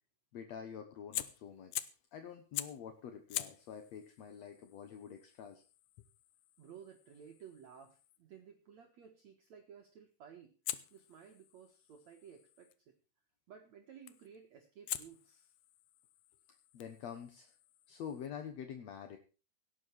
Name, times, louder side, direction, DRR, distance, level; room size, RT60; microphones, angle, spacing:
voice 1, 0.3-5.6 16.7-17.5 17.9-19.2, left 8 dB, 60° left, 7 dB, 1.8 m, -47 dB
Fire, 1.1-2.1 2.5-2.9 3.3-8.2 10.6-12.8 14.1-14.4 14.9-18.3, left 14 dB, 80° left, 1.9 m, -46 dB
voice 2, 6.6-10.6 10.9-12.9 13.5-15.5, right 7 dB, 55° right, 2 dB, 2.3 m, -56 dB
17.5 x 10.0 x 4.7 m, 0.34 s
omnidirectional pair, 4.6 m